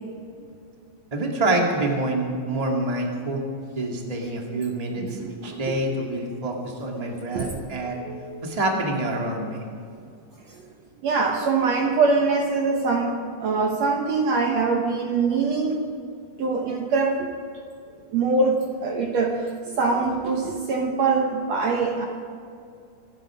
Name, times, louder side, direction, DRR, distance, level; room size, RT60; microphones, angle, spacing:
voice 1, 1.1-3.4 3.8-5.0 5.4-8.0 8.4-9.6, right 2 dB, 15° right, 0 dB, 1.8 m, -26 dB
voice 2, 4.5-5.8 7.3-8.5 10.5-10.6 11.0-15.8 16.4-17.3 18.1-22.1, right 4 dB, 65° right, 1 dB, 2.1 m, -24 dB
25.0 x 11.0 x 5.0 m, 2.4 s
omnidirectional pair, 3.8 m